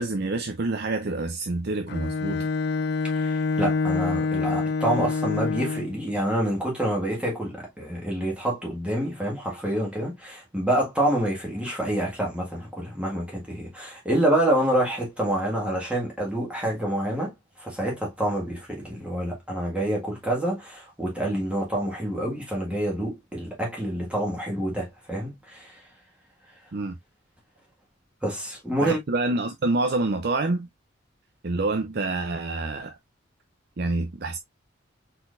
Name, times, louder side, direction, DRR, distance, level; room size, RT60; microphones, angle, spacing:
voice 1, 0.0-2.5 26.7-27.0 28.8-30.7 31.4-33.0 33.8-34.4, right 2 dB, 55° right, 0.6 m, -27 dB
Bowed string instrument, 1.9-6.0, left 4 dB, 55° left, 0.4 m, -26 dB
voice 2, 3.1-25.8 28.2-29.0, right 1 dB, 5° right, 1.7 m, -27 dB
4.4 x 4.0 x 2.5 m
head